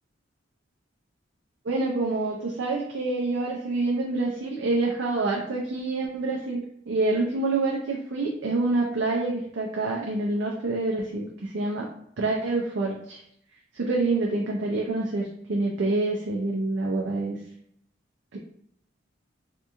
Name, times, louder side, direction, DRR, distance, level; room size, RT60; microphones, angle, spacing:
voice 1, 1.6-11.9 12.2-13.2 13.7-17.4 18.3-18.4, right 2 dB, 75° right, -2 dB, 0.5 m, -27 dB
2.9 x 2.5 x 3.6 m, 0.69 s
head